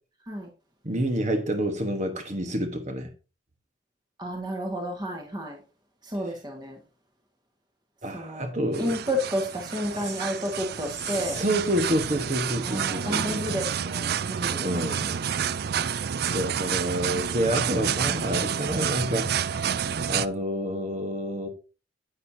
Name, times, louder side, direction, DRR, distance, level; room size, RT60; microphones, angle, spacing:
voice 1, 0.8-3.1 8.0-8.9 11.0-13.4 14.6-15.2 16.3-21.5, equal, 40° right, 1.4 m, -28 dB
voice 2, 4.2-5.6 6.0-6.8 8.1-8.5 8.8-11.4 12.6-14.6 15.0-15.1, equal, 25° right, 1.7 m, -31 dB
sound 1, 8.7-20.3, right 8 dB, 60° right, 0.4 m, -29 dB
10.5 x 8.9 x 2.8 m
head